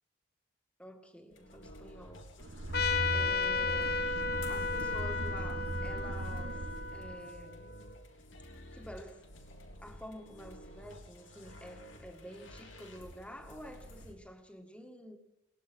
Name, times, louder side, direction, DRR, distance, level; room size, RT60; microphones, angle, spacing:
voice 1, 0.8-2.3 3.1-4.1 4.5-6.7 6.9-7.7 8.5-9.3 9.8-15.2, equal, 5° left, 2.0 m, -49 dB
sound 1, 1.3-14.1, left 1 dB, 85° left, 3.6 m, -52 dB
sound 2, 2.4-7.3, right 1 dB, 80° right, 1.6 m, -38 dB
Trumpet, 2.7-7.8, left 4 dB, 55° left, 1.2 m, -34 dB
22.0 x 19.0 x 6.3 m
head